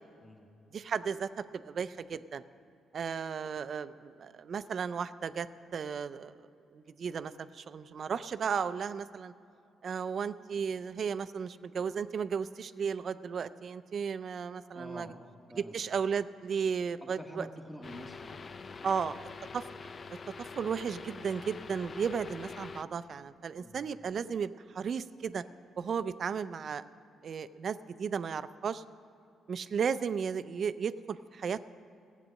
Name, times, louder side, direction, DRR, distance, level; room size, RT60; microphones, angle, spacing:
voice 1, 0.7-2.4 2.9-9.3 9.8-15.1 15.5-17.5 18.8-19.1 19.5-19.7 20.4-25.4 25.8-26.8 27.2-28.8 29.5-31.6, right 6 dB, 50° right, 14 dB, 0.5 m, -34 dB
voice 2, 14.7-15.1 15.5-15.8 17.0-19.2 23.6-23.9, equal, 10° left, 0 dB, 1.3 m, -48 dB
sound 1, 17.8-22.8, left 4 dB, 40° left, 0.5 m, -45 dB
15.5 x 8.6 x 6.4 m, 2.6 s
cardioid pair, 90°, 0 cm